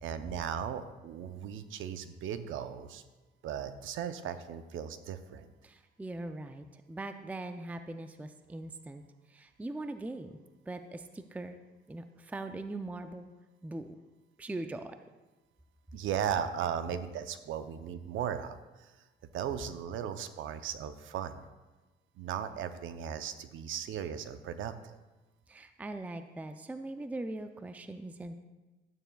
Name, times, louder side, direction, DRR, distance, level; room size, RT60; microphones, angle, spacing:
voice 1, 0.0-3.0 3.4-5.5 15.9-18.9 19.3-21.4 22.2-25.0, right 8 dB, 80° right, 10 dB, 0.6 m, -37 dB
voice 2, 5.6-10.4 10.7-11.6 11.9-13.3 13.6-13.9 14.4-15.0 25.5-28.4, right 2 dB, 5° right, 8 dB, 0.4 m, -41 dB
12.5 x 8.9 x 2.3 m, 1.2 s
cardioid pair, 90°, 20 cm